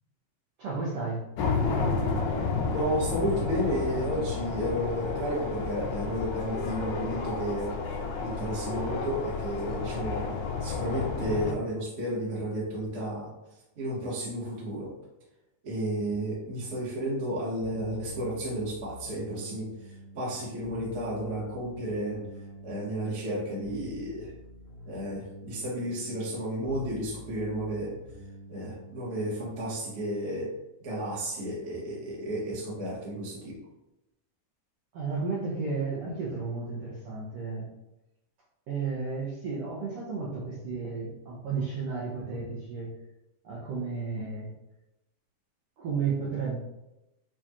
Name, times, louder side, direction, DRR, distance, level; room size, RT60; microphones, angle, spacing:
voice 1, 0.6-1.3 34.9-37.7 38.7-43.0 43.4-44.5 45.8-46.6, right 4 dB, 75° right, -5 dB, 1.3 m, -33 dB
sound 1, 1.4-11.5, left 4 dB, 80° left, 1.8 m, -31 dB
voice 2, 2.7-7.8 8.2-10.3 10.6-13.3 13.8-14.9 15.6-22.2 22.6-24.3 24.9-28.0 28.5-30.5 30.8-33.6, equal, 40° right, -5 dB, 0.9 m, -32 dB
sound 2, 17.6-29.5, left 1 dB, 60° left, 2.8 m, -46 dB
6.7 x 2.5 x 2.9 m, 0.92 s
omnidirectional pair, 3.7 m